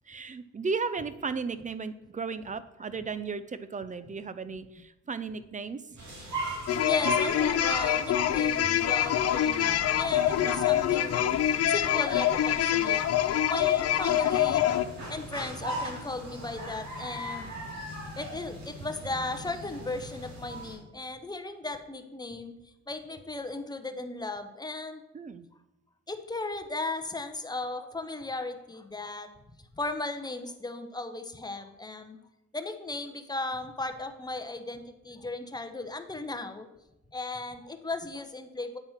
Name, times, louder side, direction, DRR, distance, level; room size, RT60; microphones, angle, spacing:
voice 1, 0.1-6.0 25.1-25.5, right 5 dB, 25° right, 13 dB, 0.5 m, -35 dB
sound 1, 6.0-20.7, right 1 dB, 65° right, 3.0 m, -39 dB
sound 2, 6.7-14.8, left 11 dB, 55° left, 0.5 m, -25 dB
voice 2, 6.8-11.4 11.7-17.5 18.1-22.5 22.9-25.0 26.1-29.3 29.8-32.2 32.5-36.7 37.1-38.8, left 2 dB, 15° left, 8 dB, 0.9 m, -36 dB
9.0 x 4.3 x 5.7 m, 0.94 s
cardioid pair, 90°, 30 cm